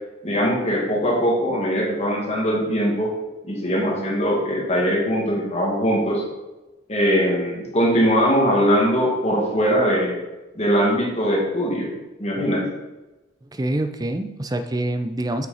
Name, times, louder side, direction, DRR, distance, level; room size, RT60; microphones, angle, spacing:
voice 1, 0.2-3.1 3.4-6.3 6.9-10.2 10.6-11.9 12.2-12.7, equal, 30° left, -2 dB, 1.8 m, -21 dB
voice 2, 13.5-15.5, right 1 dB, 20° right, 9 dB, 0.4 m, -26 dB
7.7 x 5.9 x 3.9 m, 1.1 s
head